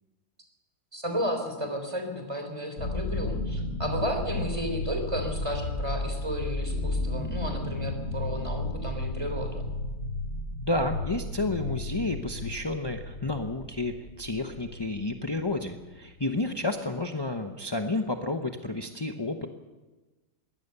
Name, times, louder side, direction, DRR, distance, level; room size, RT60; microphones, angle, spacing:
voice 1, 0.9-9.7, equal, 15° right, 5 dB, 3.7 m, -33 dB
sound 1, 2.8-16.7, left 2 dB, 40° left, 6.3 m, -33 dB
voice 2, 10.7-19.5, left 2 dB, 20° left, 4 dB, 0.6 m, -31 dB
22.0 x 17.0 x 6.9 m, 1.2 s
omnidirectional pair, 2.1 m